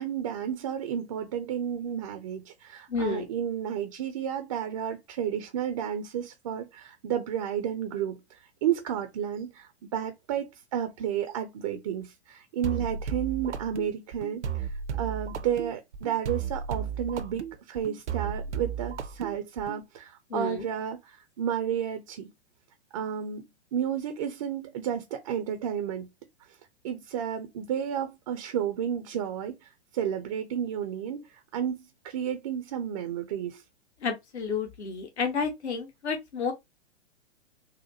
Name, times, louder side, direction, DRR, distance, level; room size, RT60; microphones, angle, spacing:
voice 1, 0.0-22.3 22.9-23.4 23.7-26.1 26.5-26.6 26.8-33.6, right 9 dB, 30° right, 0.4 m, -32 dB
voice 2, 2.9-3.3 20.3-20.6 34.0-36.5, left 5 dB, 70° left, 0.9 m, -30 dB
sound 1, 12.6-19.8, right 7 dB, 75° right, 0.6 m, -34 dB
4.0 x 2.1 x 2.8 m
figure-of-eight pair, 115°, 35 cm